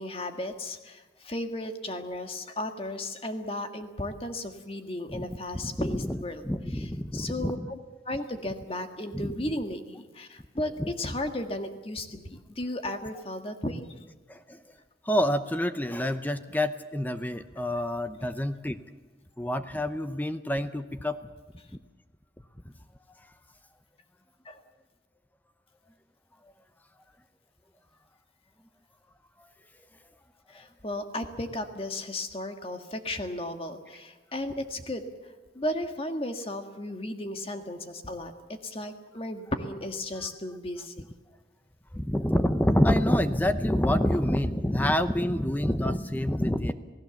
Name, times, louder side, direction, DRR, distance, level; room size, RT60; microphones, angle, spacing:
voice 1, 0.0-7.8 8.0-13.9 24.4-24.6 30.5-35.0 35.5-38.3 38.6-41.1, left 1 dB, 30° left, 6 dB, 1.6 m, -35 dB
voice 2, 5.6-6.2 6.4-7.7 9.1-9.3 10.8-10.9 14.3-14.6 15.1-18.8 19.4-21.2 41.9-46.7, left 1 dB, 10° left, 10 dB, 0.7 m, -27 dB
28.0 x 17.5 x 7.1 m, 1.3 s
head